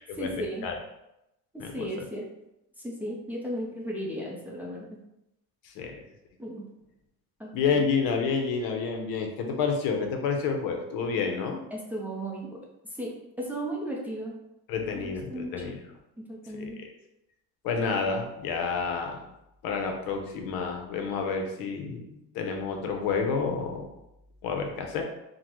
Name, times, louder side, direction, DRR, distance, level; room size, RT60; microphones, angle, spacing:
voice 1, 0.2-0.7 1.5-2.3 2.8-5.0 6.4-6.7 7.4-7.8 11.7-12.6 13.0-13.1 13.4-14.3 14.9-15.7 16.2-16.8, right 1 dB, 5° right, -3 dB, 0.5 m, -35 dB
voice 2, 1.6-2.0 5.6-6.0 7.5-11.6 14.7-15.8 16.6-16.9 17.6-19.3 19.6-23.9 24.4-25.0, left 5 dB, 75° left, 3 dB, 0.7 m, -29 dB
3.6 x 2.1 x 3.0 m, 0.86 s
cardioid pair, 125°, 35 cm